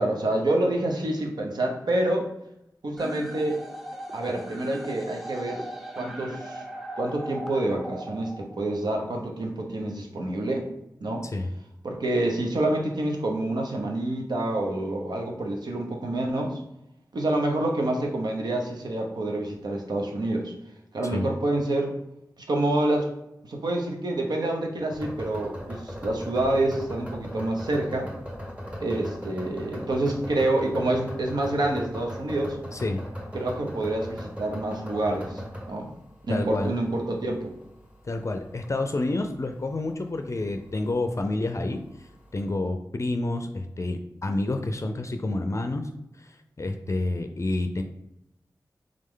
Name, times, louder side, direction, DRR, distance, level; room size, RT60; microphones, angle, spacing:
voice 1, 0.0-2.3 2.8-3.6 4.1-5.6 6.0-6.6 7.0-10.7 11.0-11.3 11.8-16.6 17.1-20.5 20.9-21.9 22.5-23.1 23.5-28.1 28.8-32.6 33.3-35.4 35.7-35.9 36.3-37.5, right 1 dB, 80° right, 1 dB, 0.8 m, -27 dB
sound 1, 3.0-9.0, right 1 dB, ahead, 0.6 m, -39 dB
sound 2, 24.9-42.4, equal, 15° right, 1.2 m, -40 dB
voice 2, 32.7-33.0 36.3-36.7 38.0-41.8 42.3-45.9 46.2-47.8, left 2 dB, 45° left, 6 dB, 0.4 m, -29 dB
3.7 x 3.2 x 3.7 m, 0.83 s
cardioid pair, 45°, 7 cm